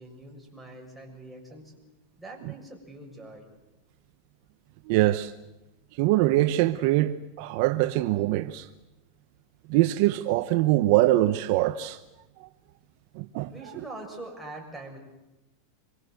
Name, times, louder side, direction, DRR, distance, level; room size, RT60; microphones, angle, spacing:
voice 1, 0.0-1.7 2.2-3.5 13.5-15.0, right 2 dB, ahead, 6.9 m, -43 dB
voice 2, 4.9-5.3 6.0-8.7 9.7-12.0 12.4-12.5 13.1-13.5, right 16 dB, 55° right, 1.0 m, -23 dB
27.0 x 23.0 x 7.9 m
supercardioid pair, 135°, 0 cm